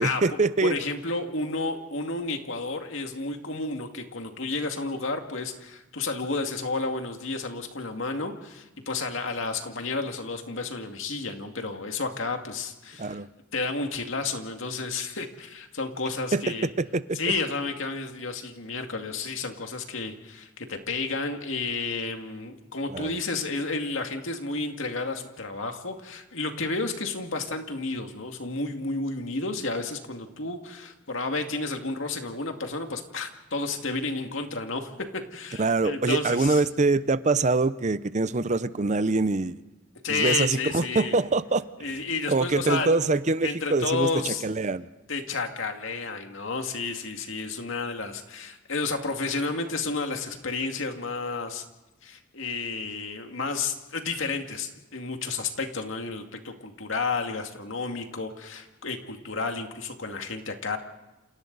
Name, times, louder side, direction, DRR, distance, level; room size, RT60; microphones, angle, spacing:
voice 1, 0.0-0.8 13.0-13.3 16.3-16.4 16.8-17.2 22.9-23.2 35.6-39.6 40.1-41.6 42.3-44.9, right 3 dB, 35° right, 14 dB, 0.7 m, -24 dB
voice 2, 0.6-13.2 13.5-16.7 17.1-36.6 40.0-41.2 41.8-43.0 43.4-44.4 45.1-51.6 52.0-60.8, left 3 dB, 80° left, 4 dB, 2.2 m, -31 dB
28.5 x 28.0 x 4.0 m, 1.0 s
head